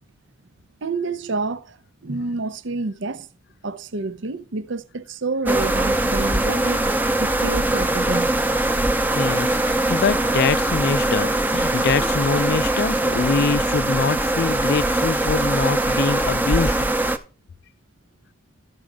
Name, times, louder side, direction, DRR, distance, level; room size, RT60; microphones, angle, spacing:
voice 1, 0.8-1.8 2.0-3.3 3.6-6.9 7.2-8.3, right 3 dB, 60° right, 0.7 m, -28 dB
sound 1, 5.5-17.2, right 1 dB, 10° right, 0.6 m, -21 dB
voice 2, 9.1-16.9, left 5 dB, 50° left, 0.4 m, -24 dB
13.0 x 6.1 x 3.6 m
head